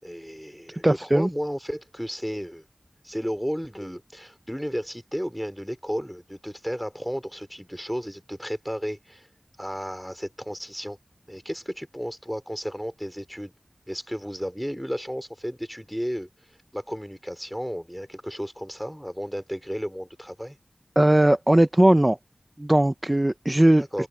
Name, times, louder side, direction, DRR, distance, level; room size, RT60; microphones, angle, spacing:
voice 1, 0.0-2.6 3.0-9.3 9.6-11.0 11.3-13.5 13.9-16.3 16.7-20.6 23.8-24.1, equal, ahead, 3.7 m, -33 dB
voice 2, 0.8-1.3 21.0-22.2 22.6-24.1, right 1 dB, 25° right, 0.6 m, -19 dB
open air
wide cardioid pair, 70°, 0 cm